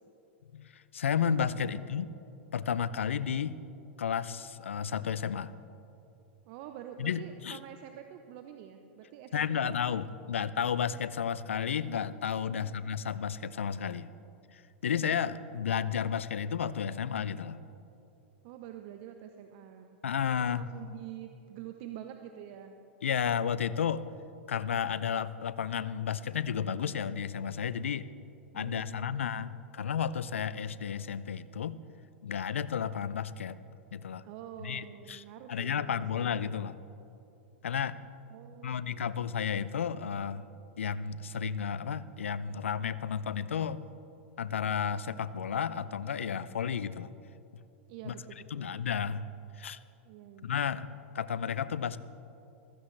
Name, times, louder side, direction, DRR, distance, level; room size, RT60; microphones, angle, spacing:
voice 1, 0.5-2.1 2.5-3.6 4.0-5.5 7.0-7.6 9.3-14.1 14.5-17.6 20.0-20.6 23.0-24.1 24.5-28.1 28.5-31.8 32.2-33.6 33.9-34.2 34.6-36.8 37.6-38.0 38.6-40.5 40.8-43.8 44.4-47.1 48.0-48.1 48.5-49.3 49.6-49.8 50.4-52.0, left 7 dB, 85° left, 16 dB, 0.5 m, -32 dB
voice 2, 1.5-1.9 6.5-9.8 12.5-13.0 18.4-20.0 20.5-22.8 28.5-29.3 34.2-36.3 38.3-39.0 47.9-48.7 50.0-50.5, right 10 dB, 50° right, 6 dB, 0.8 m, -47 dB
15.5 x 15.0 x 3.3 m, 2.7 s
hypercardioid pair, 110°, 7 cm